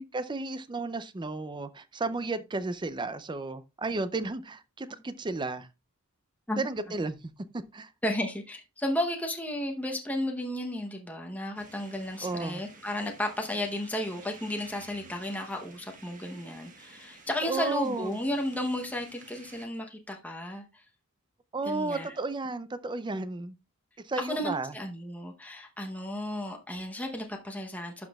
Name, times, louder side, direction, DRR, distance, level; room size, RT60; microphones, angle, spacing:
voice 1, 0.1-5.7 6.6-7.1 7.7-7.9 12.2-12.6 17.4-18.2 21.5-23.5 24.0-24.7, right 3 dB, 20° right, 0.4 m, -33 dB
voice 2, 8.0-20.8 21.6-22.2 24.2-28.1, left 1 dB, 5° left, 0.8 m, -33 dB
sound 1, 11.5-19.7, right 3 dB, 35° right, 1.3 m, -52 dB
11.5 x 6.0 x 2.3 m
head